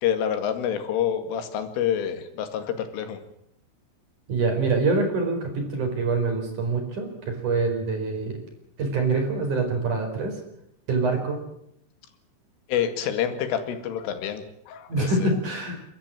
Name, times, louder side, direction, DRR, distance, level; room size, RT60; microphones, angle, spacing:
voice 1, 0.0-3.2 12.7-15.3, left 9 dB, 90° left, 8 dB, 4.6 m, -27 dB
voice 2, 4.3-8.4 8.8-10.3 10.9-11.4 14.9-15.8, right 3 dB, 40° right, 4 dB, 5.7 m, -25 dB
30.0 x 13.5 x 9.0 m, 0.76 s
omnidirectional pair, 5.5 m